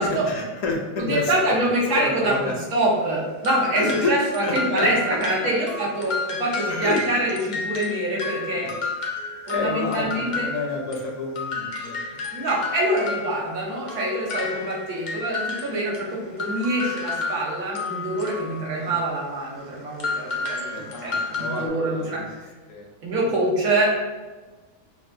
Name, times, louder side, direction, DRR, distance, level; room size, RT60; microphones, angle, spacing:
voice 1, 0.0-1.7 1.9-2.5 3.8-4.1 4.4-4.9 6.7-7.2 8.6-8.7 9.5-11.9 18.8-18.9 20.7-22.3 22.7-22.9, left 3 dB, 70° left, 0 dB, 1.0 m, -29 dB
voice 2, 1.0-8.7 9.5-10.5 12.3-20.6 21.0-22.3 23.0-24.1, right 1 dB, 90° right, -4 dB, 1.5 m, -25 dB
sound 1, 3.4-11.1 11.3-18.9 20.0-21.7, left 3 dB, 50° left, 0.5 m, -31 dB
5.7 x 2.2 x 2.6 m, 1.3 s
omnidirectional pair, 1.5 m